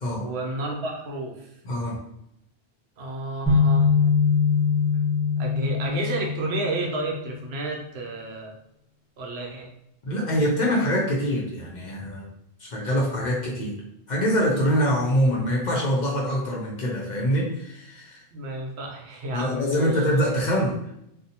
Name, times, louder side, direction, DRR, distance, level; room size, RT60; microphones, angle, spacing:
voice 1, 0.2-1.5 3.0-3.9 5.4-8.5 9.2-9.7 18.3-20.0, right 2 dB, 80° right, 0 dB, 0.9 m, -31 dB
voice 2, 1.6-2.0 10.1-12.3 12.6-13.8 14.1-18.2 19.3-20.7, equal, 55° left, -3 dB, 0.6 m, -24 dB
sound 1, 3.5-7.5, left 5 dB, 10° right, 0.9 m, -22 dB
2.7 x 2.0 x 2.7 m, 0.78 s
omnidirectional pair, 1.1 m